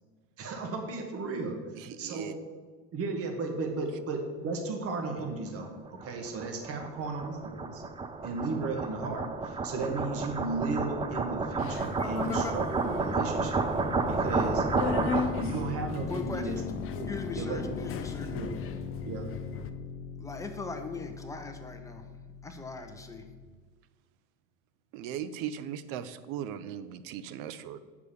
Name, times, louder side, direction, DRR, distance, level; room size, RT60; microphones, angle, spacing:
voice 1, 0.4-2.3 2.9-7.8 8.2-13.7 14.1-14.7 15.4-17.7 18.3-18.6 19.0-19.3, right 3 dB, 40° right, 3 dB, 1.3 m, -35 dB
voice 2, 1.8-2.3 24.9-27.8, right 9 dB, 60° right, 13 dB, 0.7 m, -38 dB
sound 1, 5.6-15.6, right 4 dB, 15° right, 0.4 m, -31 dB
Subway metro underground, 11.6-19.7, left 5 dB, 35° left, 0.6 m, -38 dB
voice 3, 12.0-12.5 16.1-16.6 17.1-18.3 20.2-22.1 22.4-23.3, left 3 dB, 10° left, 5 dB, 0.8 m, -39 dB
sound 2, 13.9-23.5, left 7 dB, 85° left, 0.9 m, -40 dB
6.7 x 4.9 x 7.0 m, 1.5 s
supercardioid pair, 115°, 36 cm